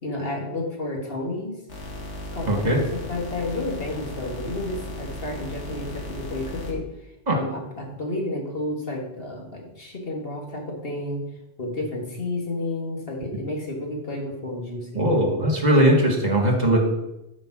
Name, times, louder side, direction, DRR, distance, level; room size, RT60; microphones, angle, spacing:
voice 1, 0.0-1.6 2.3-6.9 7.3-11.2 11.6-15.1, left 2 dB, 55° left, 0 dB, 2.1 m, -31 dB
sound 1, 1.7-6.7, left 1 dB, 75° left, 2.2 m, -36 dB
voice 2, 2.5-2.8 7.3-7.4 14.9-16.8, right 1 dB, 35° right, 1 dB, 1.8 m, -19 dB
9.6 x 5.2 x 6.2 m, 0.90 s
omnidirectional pair, 1.2 m